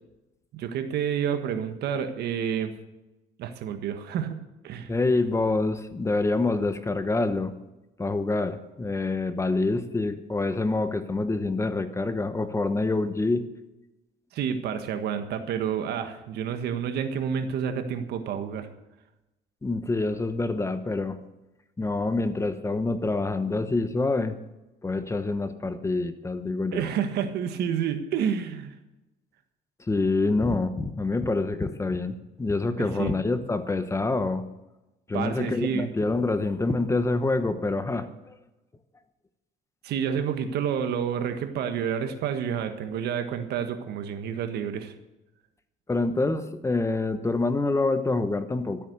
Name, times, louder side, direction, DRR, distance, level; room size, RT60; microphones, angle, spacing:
voice 1, 0.5-2.7 3.4-4.4 4.6-4.9 14.3-18.7 26.7-28.7 32.8-33.1 35.1-35.9 39.8-44.9, right 8 dB, 75° right, 8 dB, 1.5 m, -29 dB
voice 2, 4.9-7.5 8.0-13.5 19.6-21.2 21.8-24.4 24.8-26.9 29.9-34.4 35.1-38.4 45.9-48.8, left 3 dB, 15° left, 10 dB, 1.0 m, -26 dB
13.0 x 8.6 x 6.7 m, 1.0 s
cardioid pair, 110°, 17 cm